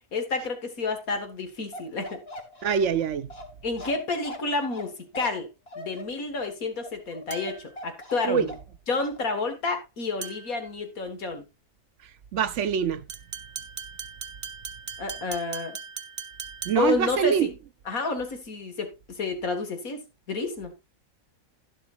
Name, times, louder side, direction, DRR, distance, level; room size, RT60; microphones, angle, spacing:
voice 1, 0.1-2.2 3.6-5.5 5.8-8.6 8.9-11.4 15.0-15.8 16.8-17.5 17.9-20.7, left 3 dB, 90° left, 2.3 m, -30 dB
Bark, 1.7-8.7 9.0-9.2, left 1 dB, 45° left, 1.8 m, -41 dB
voice 2, 2.6-3.3 8.2-8.5 12.3-13.0 16.6-17.5, right 8 dB, 65° right, 1.0 m, -24 dB
sound 1, 7.3-7.7 10.2-10.6 13.1-17.0, right 5 dB, 30° right, 0.6 m, -39 dB
11.5 x 11.0 x 2.5 m
omnidirectional pair, 1.4 m